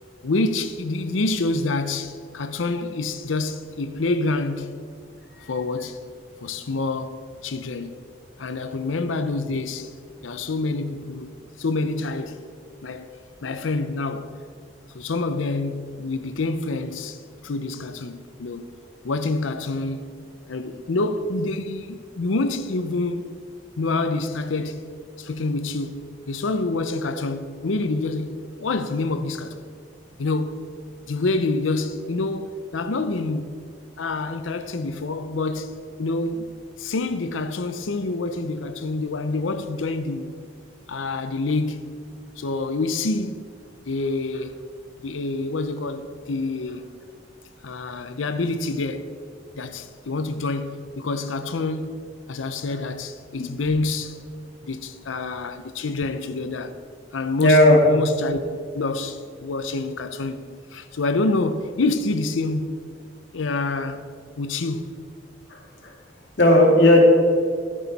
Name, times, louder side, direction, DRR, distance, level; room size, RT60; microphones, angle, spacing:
voice 1, 0.2-4.7 5.4-6.0 6.4-8.0 8.4-9.9 10.2-12.4 12.8-13.1 13.4-14.3 14.9-18.7 19.0-20.1 20.5-23.3 23.8-29.6 30.2-30.7 31.1-33.6 34.0-35.7 36.0-36.5 36.8-40.3 40.9-42.0 42.4-43.5 43.8-44.6 45.0-46.9 47.6-49.1 49.6-51.9 52.3-54.4 54.6-56.8 57.1-58.5 58.7-63.0 63.3-64.0 64.4-64.9, left 3 dB, 90° left, 0.6 m, -27 dB
voice 2, 57.4-57.8 65.5-65.9 66.4-67.0, left 1 dB, 60° left, 2.2 m, -15 dB
13.0 x 10.0 x 4.1 m
head